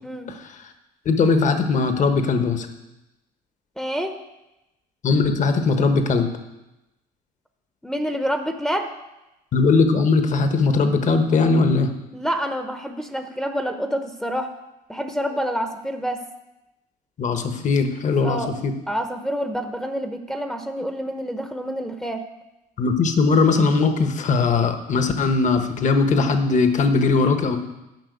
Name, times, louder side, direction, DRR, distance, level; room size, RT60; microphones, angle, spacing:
voice 1, 1.0-2.7 5.0-6.3 9.5-11.9 17.2-18.7 22.8-27.6, left 4 dB, 45° left, 7 dB, 1.2 m, -19 dB
voice 2, 3.8-4.2 7.8-8.9 12.1-14.5 14.9-16.2 18.2-18.5 18.9-22.2, equal, 5° left, 5 dB, 0.8 m, -27 dB
10.5 x 5.8 x 8.2 m, 0.95 s
cardioid pair, 110°, 17 cm